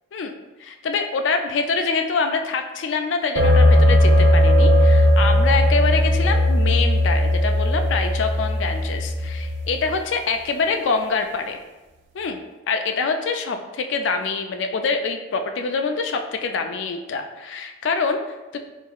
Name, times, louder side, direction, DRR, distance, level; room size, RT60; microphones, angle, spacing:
voice 1, 0.6-11.6 12.1-12.4 12.7-18.6, left 4 dB, 75° left, 5 dB, 0.4 m, -25 dB
sound 1, 3.4-9.9, left 1 dB, 65° right, 0.6 m, -17 dB
4.5 x 3.9 x 2.4 m, 1.1 s
head